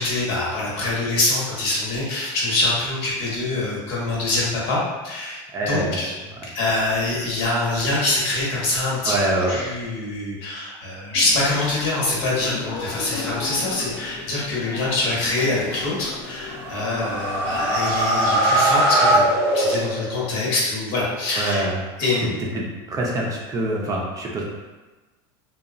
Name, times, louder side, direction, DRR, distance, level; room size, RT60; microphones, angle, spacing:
voice 1, 0.0-6.0 6.5-9.1 9.5-19.2 19.5-21.7 22.0-22.3, left 2 dB, 70° left, -5 dB, 1.1 m, -24 dB
voice 2, 5.5-6.1 9.1-9.6 21.4-21.8 22.5-22.6 22.9-24.4, right 1 dB, 25° right, -2 dB, 0.5 m, -24 dB
sound 1, 11.1-17.8, left 4 dB, 40° left, 0.4 m, -35 dB
sound 2, 16.5-20.3, right 1 dB, 75° right, 0.5 m, -20 dB
2.8 x 2.3 x 2.5 m, 1.2 s
supercardioid pair, 130°, 14 cm